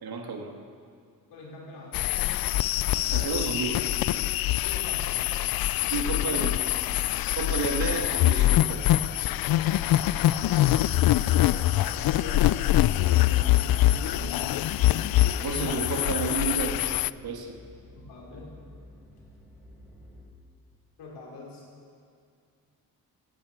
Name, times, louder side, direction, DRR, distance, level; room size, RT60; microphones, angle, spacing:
voice 1, 0.0-0.6 2.9-3.8 5.9-6.6 7.4-9.0 15.4-16.9 17.2-17.6, right 4 dB, 65° right, 3 dB, 2.1 m, -31 dB
voice 2, 1.3-2.1 4.6-5.4 6.2-6.6 7.1-7.2 11.1-15.2 17.9-18.5 21.0-21.6, left 2 dB, 80° left, -3 dB, 4.6 m, -43 dB
sound 1, 1.9-17.1, left 14 dB, 60° left, 0.5 m, -24 dB
sound 2, 11.7-20.3, left 1 dB, ahead, 3.6 m, -50 dB
14.0 x 9.8 x 8.2 m, 2.2 s
supercardioid pair, 60°, 40 cm